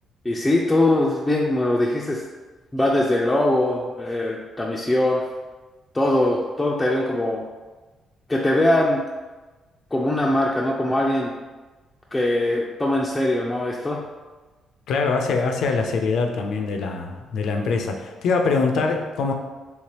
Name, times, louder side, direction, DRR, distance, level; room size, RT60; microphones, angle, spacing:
voice 1, 0.2-2.2 2.7-5.3 5.9-7.4 8.3-9.0 9.9-11.3 12.1-14.1, left 1 dB, 15° left, -3 dB, 0.4 m, -21 dB
voice 2, 14.9-19.3, left 4 dB, 75° left, 4 dB, 0.4 m, -23 dB
3.3 x 3.2 x 2.9 m, 1.3 s
cardioid pair, 90°, 0 cm